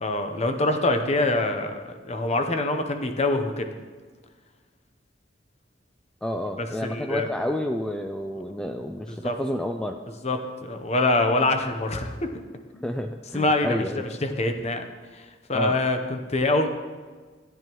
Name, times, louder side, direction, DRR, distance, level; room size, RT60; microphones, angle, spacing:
voice 1, 0.0-3.7 6.6-7.3 9.1-9.3 10.2-12.3 12.7-12.8 13.3-14.9 15.1-16.7, left 2 dB, 35° left, 6 dB, 0.8 m, -25 dB
voice 2, 6.2-10.0 12.8-14.0 15.5-15.8, left 1 dB, 5° left, 5 dB, 0.3 m, -30 dB
13.5 x 9.1 x 3.0 m, 1.5 s
head